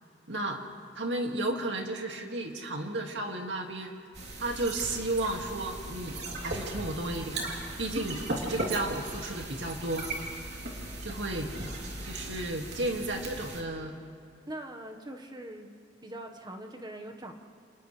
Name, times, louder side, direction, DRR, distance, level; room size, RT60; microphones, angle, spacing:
voice 1, 0.3-0.6 0.9-3.9 4.4-7.4 7.8-8.2 8.5-10.1 11.0-11.5 12.0-13.9, right 2 dB, 80° right, 2 dB, 2.3 m, -33 dB
sound 1, 4.1-13.6, right 2 dB, 65° right, 3.3 m, -37 dB
voice 2, 14.5-15.7 16.0-17.3, right 1 dB, 25° right, 4 dB, 1.4 m, -42 dB
29.0 x 29.0 x 3.4 m, 2.4 s
head